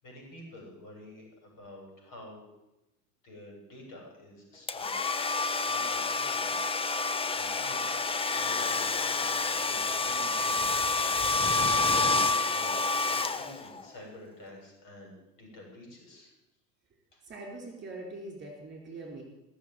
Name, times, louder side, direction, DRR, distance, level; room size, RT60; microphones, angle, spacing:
voice 1, 0.0-2.5 3.2-5.0 5.2-6.6 7.0-8.8 9.6-16.3 17.1-17.2, left 1 dB, 40° left, 0 dB, 7.4 m, -49 dB
Domestic sounds home sounds, 4.7-13.8, left 3 dB, 10° left, 0.7 m, -28 dB
voice 2, 17.2-19.2, right 2 dB, 20° right, 1 dB, 4.8 m, -42 dB
17.5 x 7.5 x 9.3 m, 0.93 s
hypercardioid pair, 85°, 49 cm